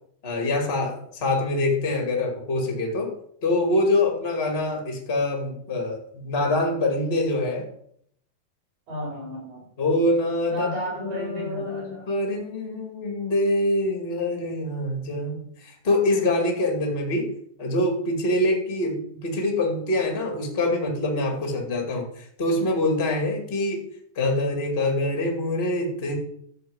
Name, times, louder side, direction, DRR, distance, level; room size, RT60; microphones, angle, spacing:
voice 1, 0.2-3.1 3.4-7.7 9.8-10.7 11.0-17.3 17.6-23.9 24.2-26.2, left 1 dB, 20° left, 1 dB, 1.9 m, -25 dB
voice 2, 8.9-9.6 10.5-12.1, equal, 75° right, -3 dB, 6.7 m, -33 dB
13.0 x 4.6 x 7.9 m, 0.67 s
omnidirectional pair, 4.0 m